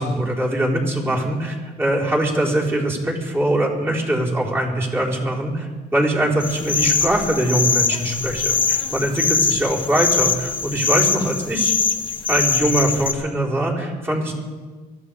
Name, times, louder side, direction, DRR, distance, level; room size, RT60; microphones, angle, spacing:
voice 1, 0.0-11.7 12.3-14.3, right 1 dB, 15° right, -4 dB, 4.4 m, -22 dB
sound 1, 6.4-13.1, left 5 dB, 30° left, 1.2 m, -22 dB
23.5 x 14.5 x 3.6 m, 1.4 s
cardioid pair, 110°, 17 cm